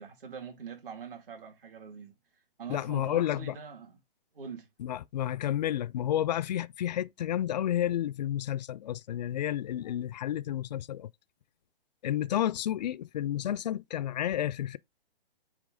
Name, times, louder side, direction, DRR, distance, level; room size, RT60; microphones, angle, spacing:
voice 1, 0.0-2.1 2.6-4.0 4.3-4.7, right 6 dB, 65° right, 2.7 m, -44 dB
voice 2, 2.7-3.6 4.8-11.1 12.0-14.8, left 11 dB, 45° left, 0.4 m, -31 dB
8.6 x 3.0 x 3.8 m
hypercardioid pair, 145°, 30 cm